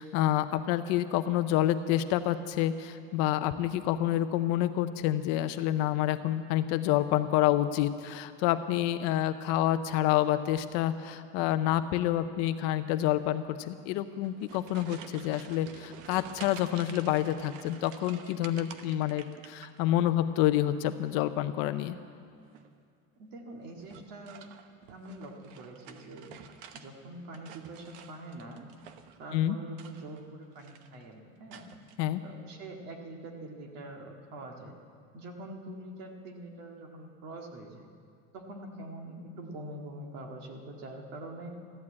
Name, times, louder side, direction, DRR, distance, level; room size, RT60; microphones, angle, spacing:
voice 1, 0.0-22.0 29.3-29.6 32.0-32.2, left 13 dB, 50° left, 11 dB, 0.6 m, -28 dB
sound 1, 14.1-20.1 20.4-21.0 22.4-22.8 23.8-26.9 27.2-29.2 29.7-30.3 30.6-31.0 31.5-32.0, right 8 dB, 75° right, 1.1 m, -50 dB
voice 2, 23.2-24.5 24.9-26.3 26.7-28.7 29.2-31.7 32.2-34.7 35.1-37.9 38.3-41.5, right 1 dB, 50° right, 2 dB, 1.9 m, -44 dB
14.5 x 11.0 x 8.5 m, 2.3 s
cardioid pair, 175°, 34 cm